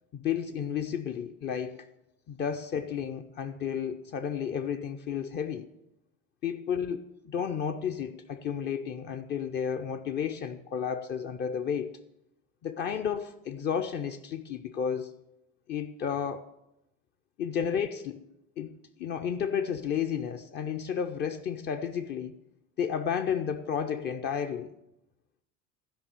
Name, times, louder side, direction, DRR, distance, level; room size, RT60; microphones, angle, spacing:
voice 1, 0.1-1.9 2.3-5.7 6.4-12.0 12.6-15.1 15.7-16.5 17.4-18.2 18.6-22.4 22.8-24.7, left 7 dB, 25° left, 0.4 m, -32 dB
11.5 x 5.4 x 6.8 m
figure-of-eight pair, 65°, 42 cm